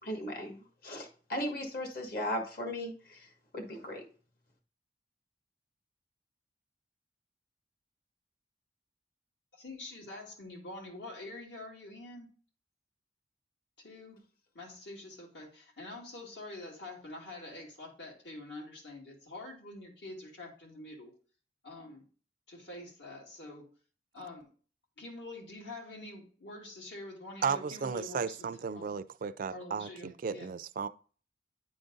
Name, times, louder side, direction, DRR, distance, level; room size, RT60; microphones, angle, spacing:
voice 1, 0.0-3.3 3.5-4.1, left 1 dB, 55° left, 1.5 m, -37 dB
voice 2, 9.5-12.3 13.8-14.2 14.5-21.1 21.6-22.0 22.5-23.6 24.1-24.5 25.0-28.9 29.5-30.5, left 2 dB, 80° left, 2.3 m, -46 dB
voice 3, 27.4-30.9, right 6 dB, 50° right, 0.3 m, -34 dB
9.3 x 3.9 x 3.8 m
head